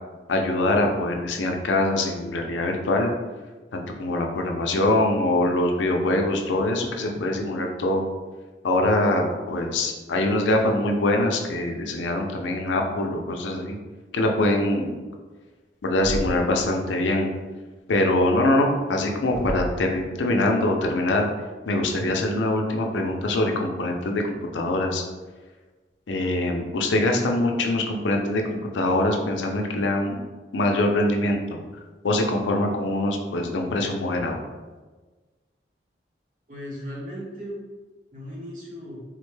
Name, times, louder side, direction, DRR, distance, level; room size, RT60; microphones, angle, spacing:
voice 1, 0.3-3.1 3.7-8.1 8.6-13.8 14.1-14.9 15.8-17.3 17.9-21.3 21.7-25.0 26.1-30.2 30.5-31.4 32.0-34.4, left 1 dB, 85° left, 2 dB, 0.5 m, -23 dB
Thump thud, 16.0-16.6 19.3-19.8, equal, ahead, 0.3 m, -31 dB
voice 2, 36.5-37.6 38.1-39.0, equal, 45° right, -4 dB, 0.9 m, -36 dB
3.6 x 2.1 x 3.1 m, 1.3 s
head